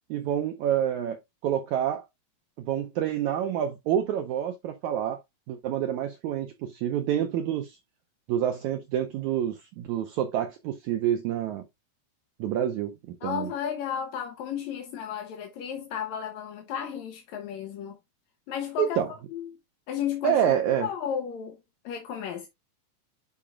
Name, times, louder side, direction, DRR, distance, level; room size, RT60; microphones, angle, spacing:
voice 1, 0.1-2.0 2.6-5.2 5.5-7.8 8.3-11.7 12.4-13.5 18.8-19.1 20.2-20.9, right 10 dB, 90° right, 1.6 m, -28 dB
voice 2, 13.2-18.0 18.5-19.0 19.3-19.5 19.9-20.6 20.8-21.6 21.8-22.5, left 8 dB, 65° left, 1.9 m, -33 dB
11.0 x 5.0 x 2.4 m
omnidirectional pair, 4.2 m